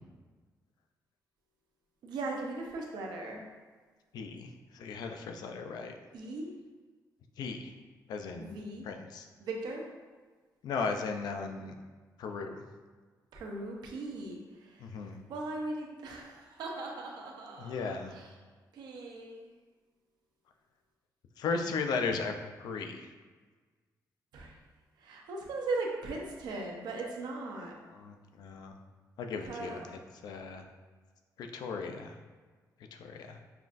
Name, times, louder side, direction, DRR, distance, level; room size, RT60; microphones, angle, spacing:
voice 1, 2.0-3.4 6.1-6.5 8.4-8.9 9.4-9.9 13.3-14.9 15.3-18.3 18.7-19.5 24.3-24.5 25.0-27.7 29.4-29.9, right 2 dB, 85° right, 0 dB, 0.6 m, -39 dB
voice 2, 4.1-5.9 7.4-7.7 8.1-8.5 8.8-9.3 10.6-11.7 12.2-12.6 14.8-15.2 17.6-18.2 21.4-22.3 22.6-23.1 27.9-28.8 29.2-29.8 30.2-30.6 31.4-32.2 32.9-33.4, left 4 dB, 75° left, 5 dB, 0.4 m, -36 dB
5.7 x 2.5 x 2.5 m, 1.4 s
wide cardioid pair, 175°, 7 cm